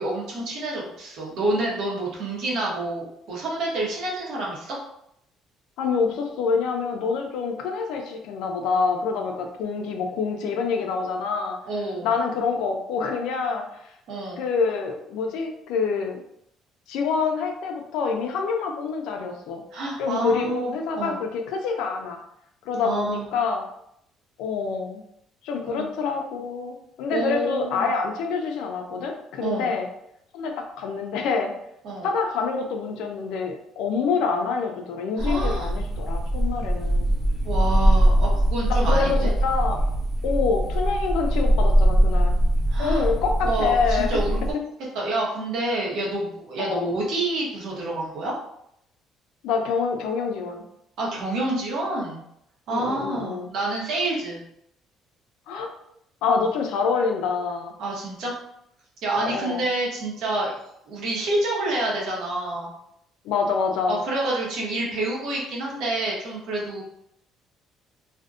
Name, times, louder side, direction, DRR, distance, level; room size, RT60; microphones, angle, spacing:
voice 1, 0.0-4.8 11.7-12.1 14.1-14.4 19.7-21.2 22.8-23.3 25.7-25.9 27.1-27.9 29.4-29.7 31.8-32.1 35.2-35.7 37.4-39.3 42.7-43.1 43.4-44.4 44.9-48.3 51.0-52.2 52.7-54.4 57.8-58.3 59.0-60.5 60.9-62.7 63.9-66.8, right 2 dB, 60° right, -4 dB, 0.8 m, -28 dB
voice 2, 5.8-11.6 12.0-13.7 14.4-16.2 16.9-19.6 20.0-22.2 22.7-23.6 24.4-25.0 25.4-29.9 30.3-31.5 32.0-37.1 38.7-39.8 40.2-42.4 42.8-44.2 46.6-46.9 49.4-50.6 52.7-53.5 55.5-55.7 56.2-57.7 59.2-59.6 63.2-64.0, left 5 dB, 85° left, 3 dB, 0.4 m, -26 dB
sound 1, 35.2-44.5, right 1 dB, 5° left, 0.7 m, -22 dB
2.5 x 2.1 x 2.3 m, 0.75 s
cardioid pair, 165°, 0 cm